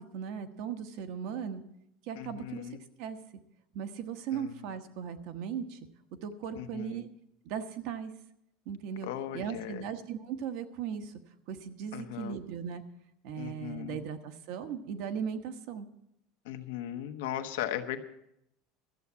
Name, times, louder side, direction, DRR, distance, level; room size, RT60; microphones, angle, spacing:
voice 1, 0.0-1.6 2.0-2.7 3.0-3.2 3.7-5.8 6.2-7.1 7.4-8.1 8.7-9.1 9.3-11.1 11.5-12.8 13.2-15.9, right 7 dB, 55° right, 8 dB, 1.1 m, -37 dB
voice 2, 2.2-2.8 4.3-4.7 6.5-7.0 9.0-9.8 11.9-12.4 13.3-14.0 16.4-18.0, left 11 dB, 90° left, 7 dB, 1.1 m, -38 dB
13.5 x 7.3 x 8.3 m, 0.79 s
cardioid pair, 160°, 0 cm